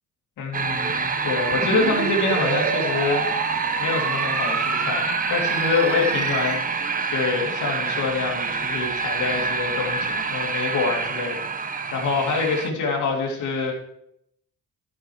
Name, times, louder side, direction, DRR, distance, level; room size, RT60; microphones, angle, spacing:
voice 1, 0.4-3.5 3.8-6.6 7.1-13.7, left 4 dB, 80° left, -1 dB, 2.6 m, -26 dB
sound 1, 0.5-12.7, right 5 dB, 30° right, 0.8 m, -27 dB
sound 2, 1.5-6.5, right 3 dB, 75° right, 3.9 m, -28 dB
12.0 x 6.4 x 4.7 m, 0.77 s
cardioid pair, 90°, 30 cm